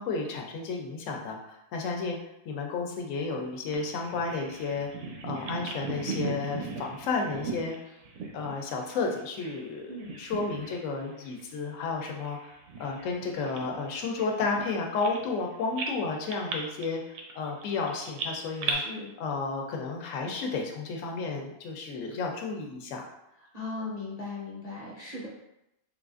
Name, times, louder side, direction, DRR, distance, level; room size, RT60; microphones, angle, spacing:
voice 1, 0.0-2.2 2.5-4.9 5.2-7.7 8.3-18.8 19.2-23.1, left 4 dB, 70° left, 1 dB, 0.9 m, -32 dB
Bird vocalization bird call bird song, 3.7-9.7 10.0-10.9 11.2-11.4 12.0-15.4 15.8-18.7, right 4 dB, 70° right, 0.8 m, -38 dB
voice 2, 18.6-19.1 23.5-25.3, left 3 dB, 35° left, -5 dB, 0.7 m, -38 dB
3.8 x 2.4 x 2.4 m, 0.86 s
omnidirectional pair, 1.4 m